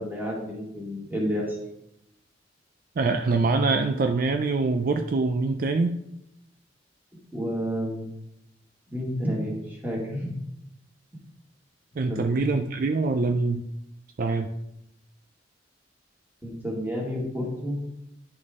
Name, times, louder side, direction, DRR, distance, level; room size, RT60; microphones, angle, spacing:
voice 1, 0.0-1.6 7.3-8.1 8.9-10.3 12.1-12.5 16.4-17.8, equal, 10° right, -3 dB, 1.9 m, -30 dB
voice 2, 3.0-6.0 12.0-13.6 14.2-14.5, right 3 dB, 50° right, 6 dB, 0.4 m, -24 dB
10.5 x 4.3 x 3.6 m, 0.83 s
head